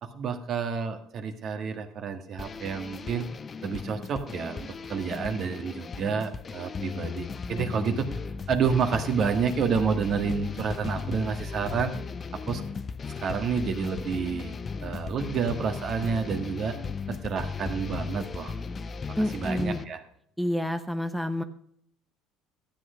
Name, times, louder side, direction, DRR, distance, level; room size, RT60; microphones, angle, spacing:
voice 1, 0.0-3.3 3.6-8.1 8.5-11.9 12.3-12.6 13.2-16.7 17.1-18.5 19.1-20.0, right 6 dB, 50° right, 7 dB, 1.7 m, -29 dB
sound 1, 2.4-19.8, left 5 dB, 30° left, 0.6 m, -36 dB
voice 2, 19.2-19.8 20.4-21.4, equal, ahead, 7 dB, 0.8 m, -28 dB
12.5 x 8.3 x 5.1 m, 0.67 s
supercardioid pair, 90°, 0 cm